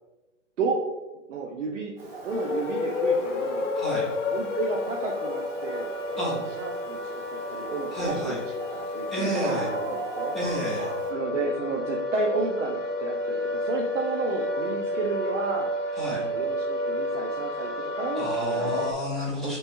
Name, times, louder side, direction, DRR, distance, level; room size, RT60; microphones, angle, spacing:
voice 1, 1.3-1.9 2.2-3.7 4.3-5.9 6.1-8.4 8.9-10.3 11.1-15.7 16.1-18.9 19.4-19.6, right 4 dB, 75° right, -1 dB, 0.8 m, -32 dB
Dog, 2.0-11.1, right 2 dB, 50° right, 1.2 m, -39 dB
sound 1, 2.3-18.9, left 2 dB, 75° left, 0.9 m, -30 dB
voice 2, 3.8-4.1 6.2-6.4 7.9-8.4 9.1-9.7 10.3-10.9 16.0-16.2 18.1-19.6, equal, ahead, -9 dB, 0.7 m, -30 dB
3.2 x 3.1 x 4.3 m, 1.1 s
hypercardioid pair, 150°, 38 cm